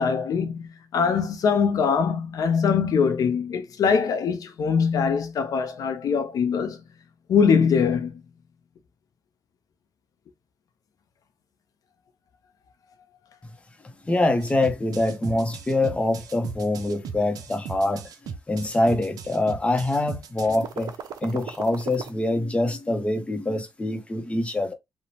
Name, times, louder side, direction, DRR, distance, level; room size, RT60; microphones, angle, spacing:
voice 1, 0.0-6.8 7.3-8.2, left 6 dB, 70° left, 0.5 m, -22 dB
voice 2, 13.8-18.1 18.5-20.9 21.2-24.7, left 2 dB, 20° left, 0.6 m, -25 dB
sound 1, 14.4-22.1, right 7 dB, 80° right, 0.4 m, -37 dB
2.9 x 2.0 x 2.7 m
cardioid pair, 80°, 6 cm